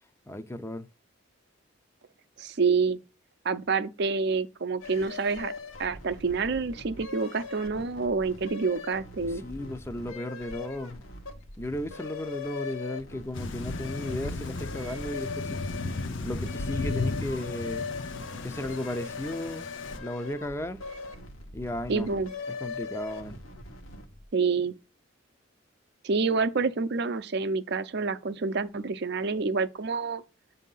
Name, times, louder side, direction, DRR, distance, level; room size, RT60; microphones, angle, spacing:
voice 1, 0.3-0.9 9.3-11.0 11.6-15.6 16.2-17.9 18.4-20.8 21.5-22.1 22.6-23.4, left 1 dB, 10° left, 0.4 m, -35 dB
voice 2, 2.4-3.0 3.4-5.5 5.8-9.4 21.9-22.3 24.3-24.8 26.0-30.2, right 4 dB, 55° right, 0.5 m, -28 dB
sound 1, 4.8-24.2, left 4 dB, 85° left, 1.1 m, -41 dB
Thunder / Rain, 13.3-20.0, left 3 dB, 65° left, 0.7 m, -35 dB
8.2 x 2.8 x 5.4 m
head